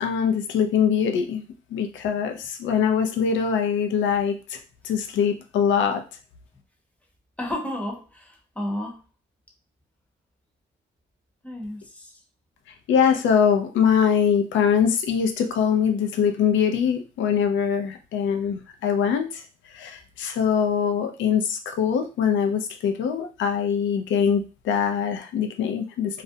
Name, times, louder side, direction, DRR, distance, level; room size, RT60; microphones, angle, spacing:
voice 1, 0.0-1.4 1.7-4.6 4.8-6.0 12.9-19.4 19.7-26.2, left 7 dB, 75° left, 6 dB, 0.5 m, -23 dB
voice 2, 7.4-9.0 11.4-12.2, left 1 dB, 5° left, 1 dB, 0.7 m, -32 dB
2.4 x 2.1 x 2.7 m, 0.32 s
cardioid pair, 90°, 20 cm